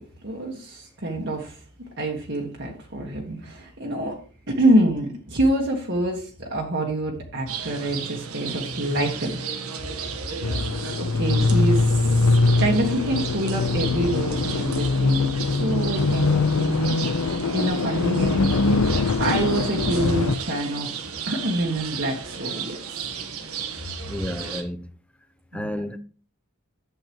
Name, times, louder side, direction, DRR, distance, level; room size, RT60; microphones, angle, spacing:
voice 1, 0.0-1.6 2.0-4.2 4.5-9.4 11.0-16.9 17.5-20.9 21.3-22.8 25.5-25.7, right 1 dB, 50° right, 1.5 m, -26 dB
sound 1, 7.5-24.6, right 6 dB, 80° right, 1.3 m, -34 dB
sound 2, 10.4-20.3, left 3 dB, 90° left, 0.7 m, -22 dB
voice 2, 24.1-24.9 25.5-26.0, left 1 dB, 5° left, 0.5 m, -31 dB
11.5 x 7.8 x 3.0 m
head